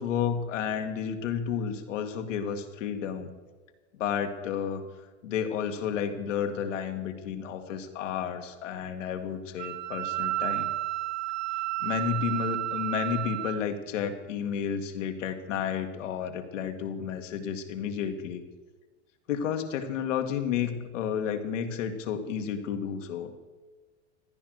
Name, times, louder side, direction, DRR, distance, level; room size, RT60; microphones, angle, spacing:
voice 1, 0.0-3.3 4.0-4.8 5.2-10.7 11.8-18.4 19.3-23.3, left 7 dB, 85° left, 5 dB, 1.9 m, -31 dB
Wind instrument woodwind instrument, 9.6-13.6, right 16 dB, 30° right, 0.5 m, -31 dB
15.5 x 10.5 x 6.5 m, 1.3 s
hypercardioid pair, 110°, 37 cm